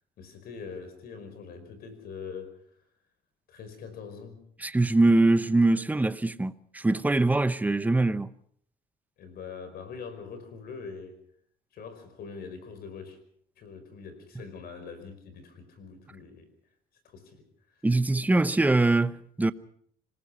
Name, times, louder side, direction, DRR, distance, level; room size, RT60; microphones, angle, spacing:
voice 1, 0.2-2.5 3.5-4.4 9.2-11.2 11.7-13.2 13.6-16.5 17.0-17.4, left 5 dB, 65° left, 5.0 m, -43 dB
voice 2, 4.6-8.3 17.8-19.5, right 2 dB, 10° right, 0.8 m, -23 dB
26.0 x 20.0 x 5.6 m
cardioid pair, 110°, 17 cm